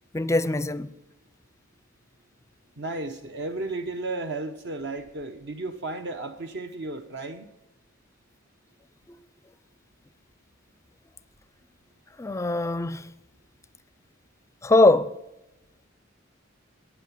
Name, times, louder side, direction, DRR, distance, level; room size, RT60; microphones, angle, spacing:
voice 1, 0.1-0.9 12.2-13.1 14.6-15.2, left 2 dB, 15° left, 0.5 m, -22 dB
voice 2, 2.8-7.5, right 2 dB, 60° right, 0.8 m, -34 dB
13.0 x 9.2 x 9.3 m
head